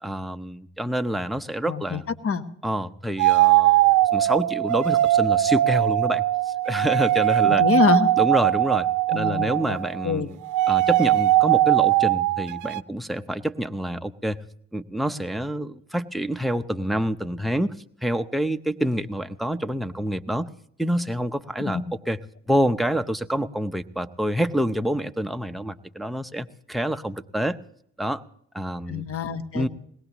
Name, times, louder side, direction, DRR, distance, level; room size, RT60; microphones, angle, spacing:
voice 1, 0.0-2.1 2.6-7.6 8.2-10.4 10.7-14.4 14.7-17.7 18.0-20.5 20.8-22.2 22.5-27.6 28.0-28.2 28.5-29.1 29.5-29.7, equal, ahead, 7 dB, 0.7 m, -27 dB
voice 2, 1.7-2.4 7.4-8.1 9.1-9.8 10.0-10.3 21.7-21.8 28.9-29.7, left 6 dB, 50° left, 9 dB, 1.2 m, -25 dB
sound 1, 3.2-10.1 10.4-12.8, right 15 dB, 80° right, 0.6 m, -20 dB
21.0 x 18.0 x 3.0 m, 0.69 s
cardioid pair, 90°, 30 cm